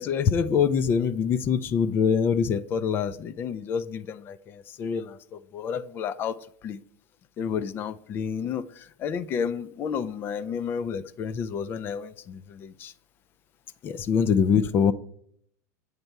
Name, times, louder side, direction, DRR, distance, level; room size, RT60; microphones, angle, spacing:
voice 1, 0.0-6.4 6.6-6.8 7.4-12.9 13.8-14.9, left 7 dB, 25° left, 0.3 m, -27 dB
8.0 x 5.3 x 4.5 m
supercardioid pair, 160°, 9 cm